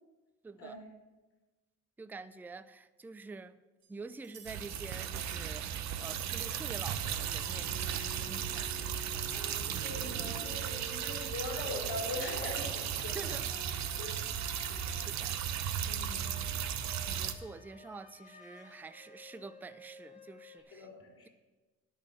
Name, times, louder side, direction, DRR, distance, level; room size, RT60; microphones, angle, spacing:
voice 1, 0.4-0.8 2.0-3.6 3.9-9.7 13.1-13.4 14.0-14.1 14.4-15.4 17.1-20.9, right 4 dB, 5° right, 0.3 m, -48 dB
sound 1, 3.8-7.3 8.4-9.9, right 5 dB, 85° right, 2.9 m, -56 dB
sound 2, 4.4-17.3, right 9 dB, 65° right, 0.8 m, -36 dB
sound 3, 5.1-5.4 6.9-20.6, left 1 dB, 25° left, 2.0 m, -53 dB
voice 2, 9.8-13.2 14.0-14.2 14.7-14.8 15.8-16.3 20.7-21.3, left 2 dB, 45° left, 3.8 m, -41 dB
10.5 x 6.3 x 7.6 m
cardioid pair, 125°, 30 cm